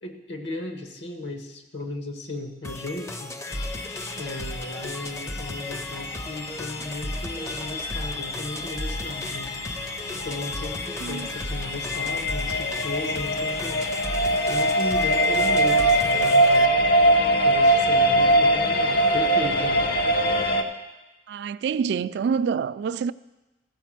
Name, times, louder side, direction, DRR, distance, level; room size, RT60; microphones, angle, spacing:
voice 1, 0.0-3.3 4.2-9.5 10.1-13.8 14.5-16.8 17.3-19.9, left 2 dB, 85° left, 1.4 m, -35 dB
sound 1, 2.6-16.7, left 1 dB, 15° left, 0.5 m, -35 dB
sound 2, 3.5-20.6, right 1 dB, 65° left, 0.8 m, -23 dB
voice 2, 21.3-23.1, right 6 dB, 70° right, 0.3 m, -26 dB
14.0 x 5.1 x 7.5 m
head